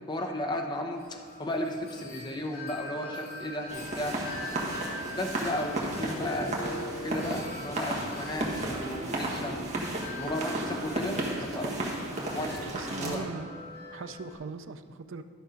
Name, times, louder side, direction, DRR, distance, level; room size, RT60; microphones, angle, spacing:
voice 1, 0.1-4.2 5.1-9.6 10.2-11.9 12.3-13.3, left 1 dB, 20° left, 3 dB, 0.7 m, -34 dB
Wind chime, 0.9-14.3, left 2 dB, 45° left, 2.6 m, -44 dB
sound 1, 3.7-13.2, right 1 dB, 35° right, 1.4 m, -34 dB
voice 2, 11.1-11.5 12.7-13.5 13.9-15.2, right 4 dB, 60° right, 9 dB, 0.4 m, -40 dB
11.5 x 6.0 x 5.0 m, 2.3 s
head